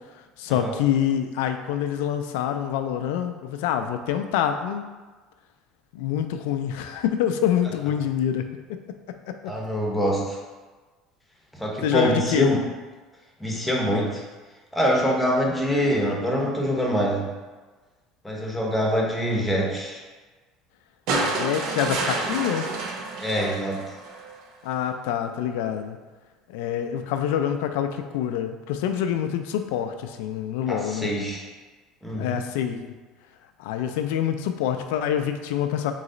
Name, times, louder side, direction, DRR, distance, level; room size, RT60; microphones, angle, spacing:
voice 1, 0.4-4.9 5.9-8.4 9.3-9.4 11.8-12.6 21.2-22.8 24.6-26.0 26.5-31.1 32.2-33.0 33.6-35.9, left 9 dB, 85° left, 7 dB, 0.4 m, -26 dB
voice 2, 9.5-10.4 11.5-12.6 13.4-14.2 14.7-17.3 18.2-20.0 23.2-23.8 30.7-31.4 32.0-32.4, equal, 5° left, -2 dB, 0.9 m, -24 dB
sound 1, 21.1-24.4 25.7-25.8, right 3 dB, 65° right, 0.6 m, -29 dB
3.9 x 3.1 x 3.8 m, 1.3 s
supercardioid pair, 110°, 0 cm